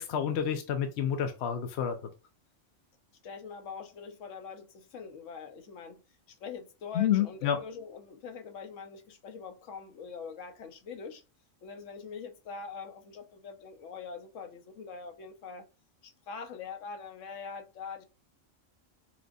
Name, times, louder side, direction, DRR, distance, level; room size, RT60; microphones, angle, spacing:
voice 1, 0.0-2.0 6.9-7.6, left 9 dB, 65° left, 0.8 m, -29 dB
voice 2, 3.2-6.0 6.3-11.2 11.6-15.7 16.0-18.0, left 5 dB, 85° left, 1.1 m, -43 dB
6.0 x 2.5 x 2.6 m
omnidirectional pair, 1.3 m